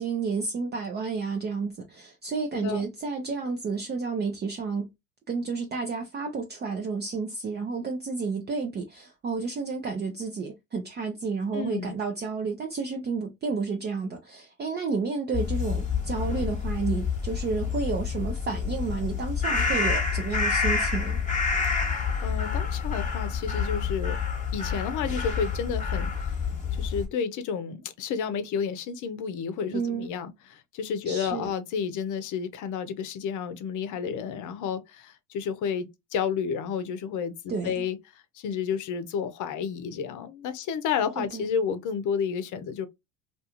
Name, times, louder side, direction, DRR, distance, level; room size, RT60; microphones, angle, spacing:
voice 1, 0.0-4.9 5.3-21.2 29.7-30.1 31.1-31.5 37.5-37.8 41.2-41.5, right 4 dB, 25° right, 0.5 m, -31 dB
voice 2, 2.5-2.8 11.5-11.9 21.8-24.2 24.5-26.1 26.8-38.0 38.4-42.9, left 6 dB, 50° left, 0.7 m, -31 dB
sound 1, 15.3-27.1, left 5 dB, 20° left, 1.1 m, -28 dB
2.5 x 2.3 x 2.8 m
hypercardioid pair, 75°, 38 cm